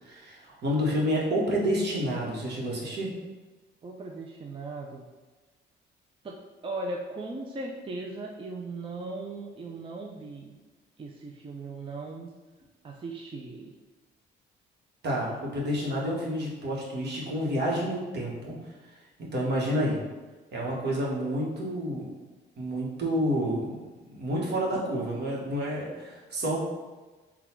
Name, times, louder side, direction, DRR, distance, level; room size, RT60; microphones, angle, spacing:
voice 1, 0.0-3.1 15.0-18.6 19.2-20.0 20.5-22.1 22.6-23.7 24.1-26.6, equal, 55° right, -3 dB, 1.2 m, -29 dB
voice 2, 3.8-5.1 6.2-6.4 6.6-10.6 11.0-12.3 12.8-13.7, right 2 dB, 25° right, 0 dB, 0.4 m, -38 dB
3.8 x 2.3 x 4.4 m, 1.2 s
cardioid pair, 90°, 20 cm